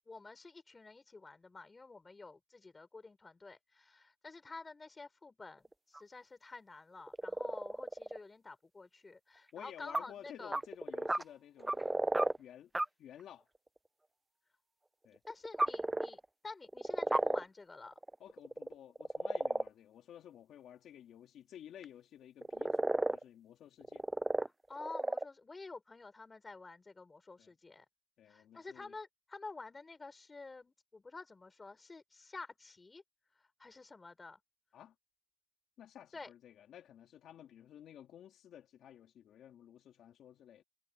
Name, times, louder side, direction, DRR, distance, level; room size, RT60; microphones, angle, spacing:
voice 1, 0.0-10.6 15.3-18.0 24.7-27.8 28.3-33.0 33.6-34.4 36.1-36.3, left 3 dB, 25° left, 5.1 m, -50 dB
sound 1, 5.6-6.0 7.1-8.2 9.9-10.0 10.3-11.2 11.6-12.4 12.7-12.8 15.3-16.2 16.6-17.4 17.9-19.7 21.8-21.9 22.4-23.2 23.8-24.5 24.7-25.2, right 2 dB, 15° right, 0.5 m, -33 dB
voice 2, 9.5-11.9 12.4-12.7 13.0-13.5 15.0-15.2 18.2-24.1 27.4-27.5 28.2-28.9 34.7-34.9 35.8-40.6, left 10 dB, 75° left, 3.4 m, -54 dB
cardioid pair, 90°, 0 cm